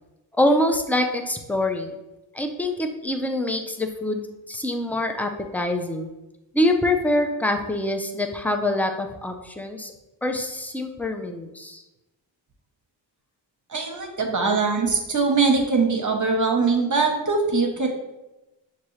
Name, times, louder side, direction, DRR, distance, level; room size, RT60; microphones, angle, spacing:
voice 1, 0.4-1.9 2.3-4.2 4.5-6.1 6.5-9.9 10.2-11.8, left 1 dB, 5° left, 4 dB, 0.5 m, -25 dB
voice 2, 13.7-17.9, right 4 dB, 40° right, 2 dB, 1.0 m, -22 dB
5.9 x 2.8 x 3.2 m, 0.98 s
cardioid pair, 45°, 49 cm